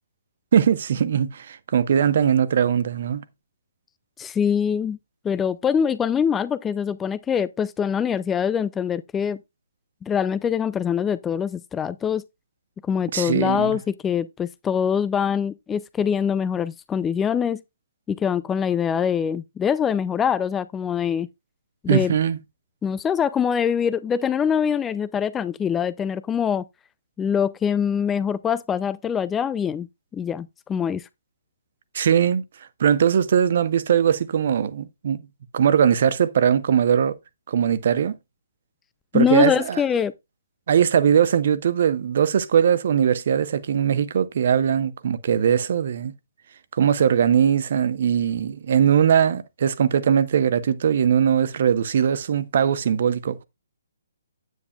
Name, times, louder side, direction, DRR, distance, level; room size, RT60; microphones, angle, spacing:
voice 1, 0.5-3.2 13.1-13.8 21.9-22.4 31.9-32.4 32.8-35.2 35.5-37.1 37.5-38.2 39.1-39.8 40.7-46.1 46.7-53.4, right 8 dB, 50° right, 1.1 m, -20 dB
voice 2, 4.2-5.0 5.2-9.4 10.0-12.2 12.8-17.6 18.1-21.3 21.8-22.1 22.8-26.6 27.2-29.9 30.1-31.1 39.1-40.1, left 7 dB, 10° left, 0.4 m, -24 dB
9.7 x 9.4 x 2.4 m
figure-of-eight pair, 135°, 0 cm